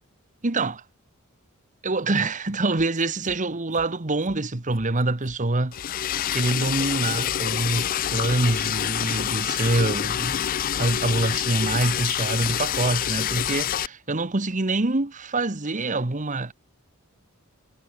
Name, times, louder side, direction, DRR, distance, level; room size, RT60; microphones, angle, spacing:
voice 1, 0.4-0.8 1.8-5.7 6.3-10.4 10.8-16.5, right 2 dB, 35° right, 1.3 m, -25 dB
sound 1, 3.0-3.4 3.7-3.9 4.2-4.4 4.7-5.4 5.7-5.9 6.2-6.4 6.7-7.4 7.7-7.9 8.2-8.4 8.7-9.4 9.7-9.9 10.2-10.4 10.7-10.8, right 1 dB, 55° right, 4.0 m, -48 dB
Liquid, 5.7-13.9, left 10 dB, 40° left, 0.4 m, -27 dB
head